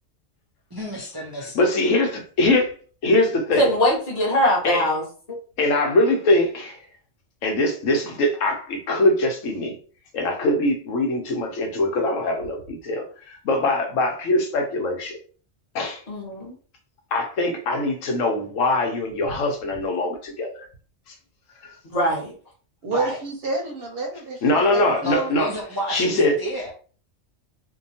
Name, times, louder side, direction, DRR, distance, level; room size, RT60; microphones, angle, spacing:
voice 1, 0.7-1.7 22.9-23.2 25.0-26.7, right 1 dB, 35° right, 0.4 m, -31 dB
voice 2, 1.5-2.7 3.0-3.7 4.6-4.8 5.6-6.8 7.4-9.7 10.1-15.2 15.7-16.0 17.1-20.7 24.4-25.5 25.9-26.4, left 2 dB, 90° left, 1.1 m, -22 dB
voice 3, 3.5-5.0 16.1-16.5 21.8-22.3, equal, 35° left, 1.0 m, -22 dB
voice 4, 22.8-25.3, right 3 dB, 60° right, 0.8 m, -29 dB
2.7 x 2.2 x 2.7 m
omnidirectional pair, 1.3 m